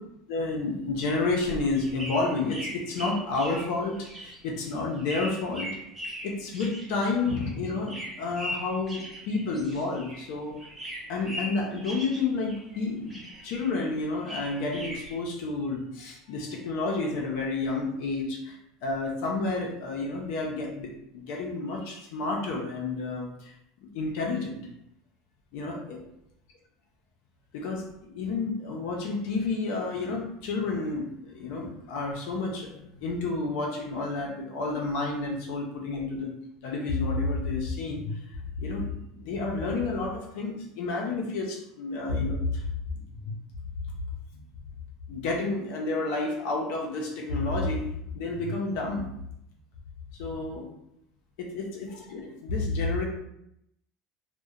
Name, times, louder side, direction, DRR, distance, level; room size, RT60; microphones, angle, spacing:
voice 1, 0.3-5.8 6.2-10.5 11.1-13.2 13.4-23.5 23.9-24.6 25.5-26.0 27.5-36.3 36.6-42.6 43.1-43.3 44.3-44.5 45.1-47.9 48.1-49.1 50.2-50.7 51.4-53.0, left 3 dB, 70° left, -1 dB, 0.5 m, -30 dB
sound 1, 1.2-10.3 10.6-12.8 13.1-15.1, equal, 10° right, 0.8 m, -40 dB
2.7 x 2.0 x 2.4 m, 0.79 s
supercardioid pair, 130°, 0 cm